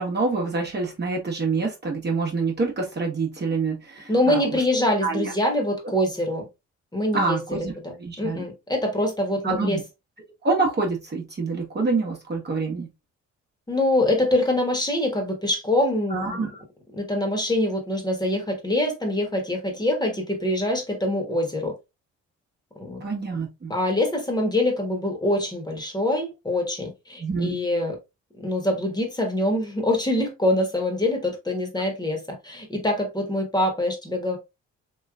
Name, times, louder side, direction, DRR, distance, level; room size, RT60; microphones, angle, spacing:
voice 1, 0.0-4.4 5.0-5.3 7.1-7.7 8.0-8.4 9.4-9.8 10.4-12.9 16.1-16.6 23.0-23.7 27.2-27.6, right 4 dB, 35° right, 1.1 m, -26 dB
voice 2, 4.1-6.5 6.9-9.8 13.7-16.5 16.9-21.7 22.8-23.0 23.7-28.0 28.4-34.4, left 1 dB, 15° left, 1.2 m, -24 dB
3.1 x 3.0 x 2.4 m
cardioid pair, 90°, 30 cm